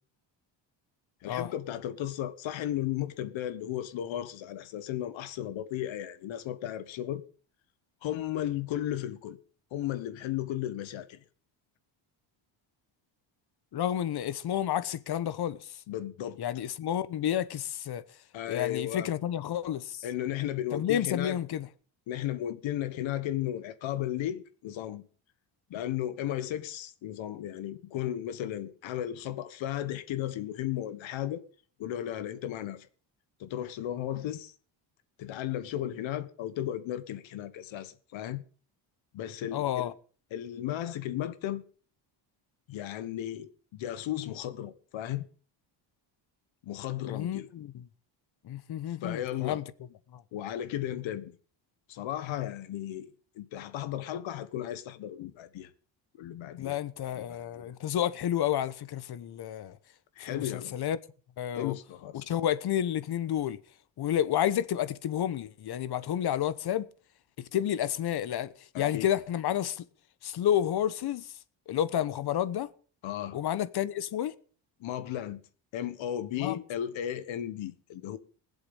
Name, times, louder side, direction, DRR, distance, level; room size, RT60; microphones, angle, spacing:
voice 1, 1.2-7.2 8.0-9.4 9.7-11.2 15.9-16.4 18.3-19.1 20.0-21.4 22.1-25.0 25.7-31.4 31.8-32.9 33.4-34.5 35.2-38.4 39.1-39.9 40.3-41.6 42.7-45.3 46.6-47.5 49.0-49.6 50.3-51.4 51.9-55.7 56.2-56.8 57.1-57.7 60.2-60.7 61.5-62.3 68.7-69.1 73.0-73.4 74.8-75.4 75.7-78.2, left 12 dB, 75° left, 1.4 m, -35 dB
voice 2, 13.7-15.8 16.4-18.0 18.5-20.0 20.7-21.7 39.5-39.9 47.0-47.8 48.4-49.6 50.1-50.2 56.6-59.8 60.2-61.0 61.4-61.8 62.1-63.6 64.0-66.8 67.4-69.8 70.2-71.3 71.7-72.7 73.3-74.3 76.4-76.6, left 10 dB, 55° left, 1.1 m, -30 dB
20.5 x 8.0 x 5.5 m
cardioid pair, 115°, 47 cm